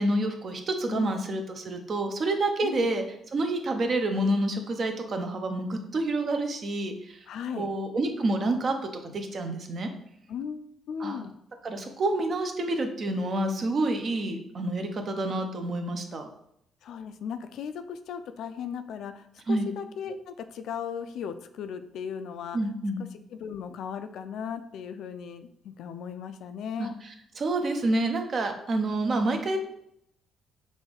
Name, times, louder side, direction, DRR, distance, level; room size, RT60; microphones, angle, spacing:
voice 1, 0.0-3.0 3.3-7.2 7.6-9.9 11.0-11.2 11.6-16.3 19.5-19.7 22.5-23.0 26.8-26.9 27.4-29.6, right 2 dB, 50° right, 5 dB, 0.7 m, -28 dB
voice 2, 0.9-1.2 2.6-2.9 7.3-7.7 10.3-11.3 16.8-22.6 23.3-26.9, left 7 dB, 75° left, 9 dB, 0.4 m, -37 dB
5.5 x 2.6 x 3.4 m, 0.75 s
cardioid pair, 85°, 0 cm